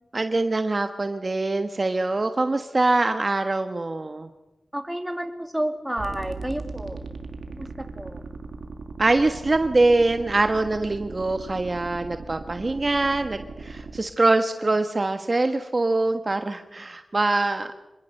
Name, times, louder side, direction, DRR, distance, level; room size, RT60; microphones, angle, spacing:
voice 1, 0.1-4.3 9.0-17.7, right 2 dB, 40° right, 8 dB, 1.3 m, -23 dB
voice 2, 4.7-7.0 7.5-8.2, right 1 dB, 10° right, 6 dB, 2.7 m, -31 dB
sound 1, 6.0-14.0, right 4 dB, 85° right, 1.8 m, -38 dB
26.0 x 21.5 x 6.6 m, 0.99 s
wide cardioid pair, 70°, 0 cm